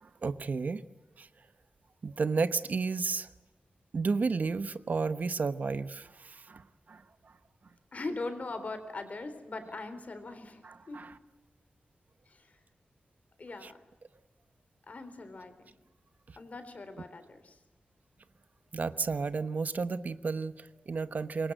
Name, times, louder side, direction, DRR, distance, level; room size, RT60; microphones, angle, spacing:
voice 1, 0.0-0.8 1.2-1.3 2.0-3.3 3.9-7.3 10.6-11.1 13.6-13.7 16.3-16.4 18.7-21.5, right 4 dB, 55° right, 12 dB, 1.0 m, -32 dB
voice 2, 7.9-11.0 12.3-12.5 13.4-13.8 14.9-15.7 16.4-17.6, left 3 dB, 45° left, 9 dB, 3.7 m, -41 dB
25.5 x 22.0 x 7.9 m, 1.1 s
wide cardioid pair, 140°, 3 cm